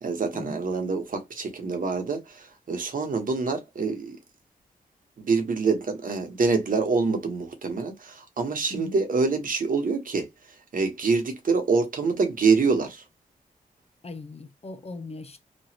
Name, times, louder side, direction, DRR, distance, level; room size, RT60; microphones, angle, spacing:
voice 1, 0.0-4.2 5.2-10.3 10.7-13.0, right 4 dB, 60° right, 1.2 m, -26 dB
voice 2, 14.0-15.4, left 2 dB, 40° left, 0.7 m, -39 dB
3.1 x 2.5 x 2.8 m
cardioid pair, 55°, 16 cm